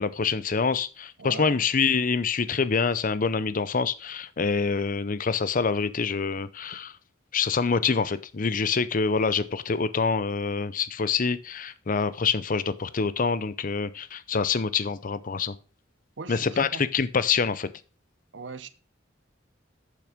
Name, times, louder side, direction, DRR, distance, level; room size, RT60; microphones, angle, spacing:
voice 1, 0.0-6.9 7.3-15.5 16.3-17.7, left 5 dB, 45° left, 0.6 m, -26 dB
voice 2, 1.2-1.7 16.2-16.9 18.3-18.7, right 4 dB, 70° right, 0.8 m, -39 dB
8.8 x 7.0 x 5.1 m
head